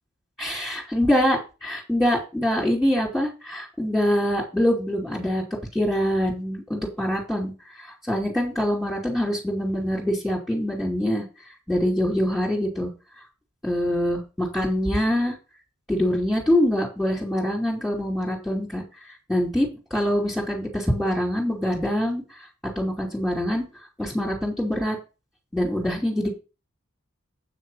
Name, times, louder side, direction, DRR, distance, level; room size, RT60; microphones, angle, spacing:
voice 1, 0.4-5.4 5.7-7.5 7.8-11.2 11.7-12.9 13.6-15.3 15.9-18.8 19.3-22.5 22.7-23.7 24.0-25.0 25.5-26.3, equal, ahead, -4 dB, 2.8 m, -24 dB
8.3 x 6.2 x 5.6 m, 0.29 s
head